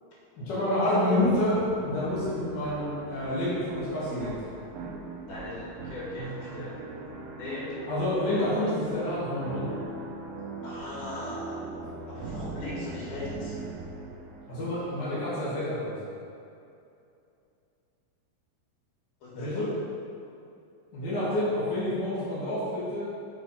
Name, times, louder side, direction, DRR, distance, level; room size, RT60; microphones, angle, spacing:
voice 1, 0.4-4.4 7.9-9.7 14.5-15.9 19.3-19.7 20.9-23.1, left 1 dB, 50° left, -10 dB, 1.3 m, -28 dB
sound 1, 1.2-14.9, right 3 dB, 85° right, 2.6 m, -40 dB
voice 2, 5.3-6.8 7.4-7.8 8.3-8.8 10.6-11.6 12.1-13.6 19.2-19.8, left 2 dB, 80° left, -6 dB, 3.6 m, -38 dB
6.4 x 4.6 x 5.5 m, 2.6 s
omnidirectional pair, 4.3 m